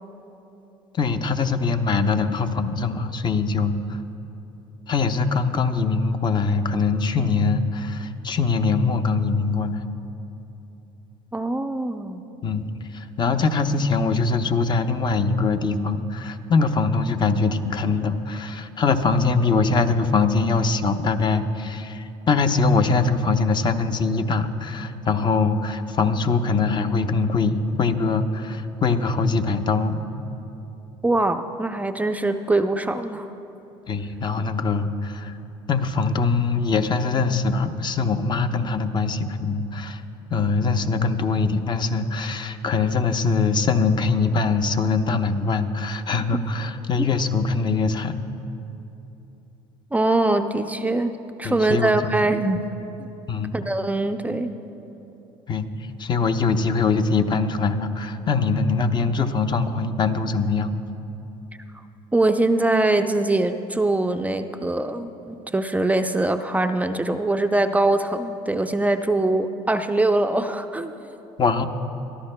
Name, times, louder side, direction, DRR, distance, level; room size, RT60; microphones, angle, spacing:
voice 1, 0.9-4.0 4.9-9.9 12.4-12.7 12.9-30.0 33.9-35.3 35.7-40.0 40.3-48.2 51.4-52.1 53.3-53.5 55.5-55.7 56.0-60.7 71.4-71.7, left 4 dB, 35° left, 8 dB, 0.7 m, -22 dB
voice 2, 11.3-12.2 31.0-33.3 47.0-47.1 49.9-51.1 51.4-52.7 53.0-53.1 53.5-54.5 62.1-70.9, right 2 dB, 10° right, 7 dB, 0.5 m, -22 dB
22.5 x 13.5 x 2.2 m, 2.9 s
supercardioid pair, 85°, 13 cm